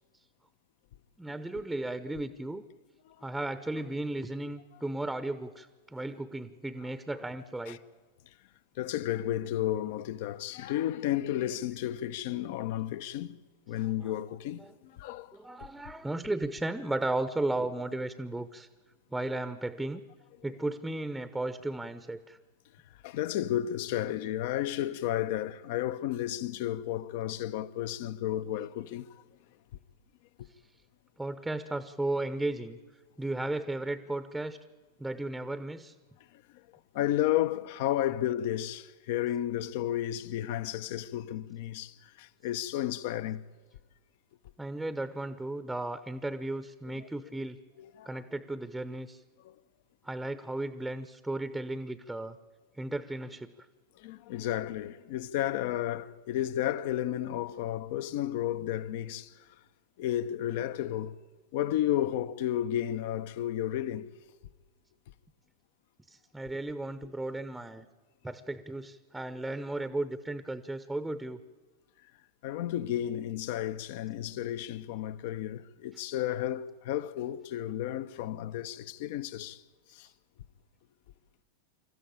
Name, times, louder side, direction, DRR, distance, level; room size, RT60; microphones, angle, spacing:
voice 1, 1.2-2.6 3.2-7.8 14.0-14.2 14.6-14.7 15.3-18.7 19.1-20.0 20.4-22.4 31.2-32.8 33.2-34.6 35.0-35.9 44.6-47.6 48.1-49.2 50.0-52.4 52.8-53.5 66.1-67.9 68.2-71.4, right 2 dB, 5° right, 0.8 m, -35 dB
voice 2, 8.8-13.4 13.7-15.4 23.0-29.1 36.3-36.4 36.9-43.4 47.0-47.1 47.8-48.2 49.4-49.6 54.0-59.5 60.0-61.1 61.5-64.1 67.0-67.1 72.4-79.6 79.9-80.1, left 12 dB, 50° left, 0.8 m, -32 dB
26.5 x 14.0 x 8.9 m
figure-of-eight pair, 90°, 0 cm